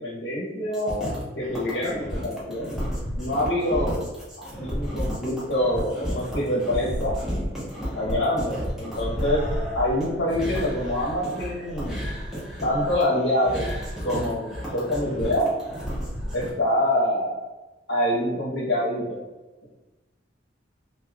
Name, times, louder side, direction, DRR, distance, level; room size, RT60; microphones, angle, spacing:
voice 1, 0.0-2.8 3.2-4.1 4.4-7.2 7.9-9.4 9.7-12.0 12.6-13.7 14.0-15.5 16.3-17.4 17.9-19.2, left 1 dB, 60° left, -6 dB, 0.8 m, -26 dB
sound 1, 0.7-16.5, equal, ahead, 0.8 m, -32 dB
2.6 x 2.3 x 3.5 m, 1.1 s
head